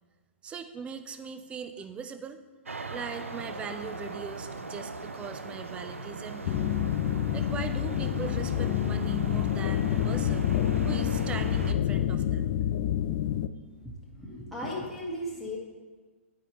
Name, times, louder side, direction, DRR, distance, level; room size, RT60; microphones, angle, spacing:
voice 1, 0.4-2.4 2.9-6.8 7.3-10.5 10.8-12.5, right 6 dB, 15° right, 9 dB, 0.4 m, -40 dB
sound 1, 2.7-11.7, right 3 dB, 90° right, 0.5 m, -39 dB
sound 2, 6.4-13.5, left 10 dB, 45° left, 0.4 m, -28 dB
voice 2, 14.1-15.6, left 1 dB, ahead, -6 dB, 1.4 m, -36 dB
9.8 x 4.6 x 3.0 m, 1.4 s
figure-of-eight pair, 115°, 7 cm